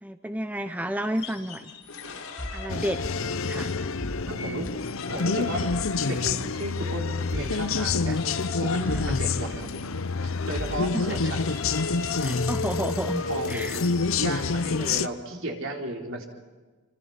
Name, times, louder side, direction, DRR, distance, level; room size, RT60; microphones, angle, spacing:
voice 1, 0.0-1.7 2.5-3.0 3.4-3.7 8.9-9.0 10.9-11.2 12.2-13.8, right 1 dB, 5° right, 8 dB, 0.8 m, -31 dB
sound 1, 1.0-3.8 4.1-14.4, left 4 dB, 85° left, 3.8 m, -39 dB
sound 2, 2.4-2.6 3.0-3.2 4.0-4.2 4.7-4.8 5.7-5.9 6.3-6.4 7.3-7.5 7.9-8.0 8.9-9.2 9.5-9.6 10.5-10.8 11.2-11.3, equal, 20° left, 1.3 m, -35 dB
sound 3, 2.7-15.1, left 4 dB, 70° left, 0.8 m, -28 dB
voice 2, 4.3-4.7 5.1-5.6 6.1-8.2 8.6-9.7 10.2-11.6 13.3-16.2, right 1 dB, 60° right, 1 dB, 4.1 m, -34 dB
28.0 x 25.0 x 5.9 m, 1.3 s
head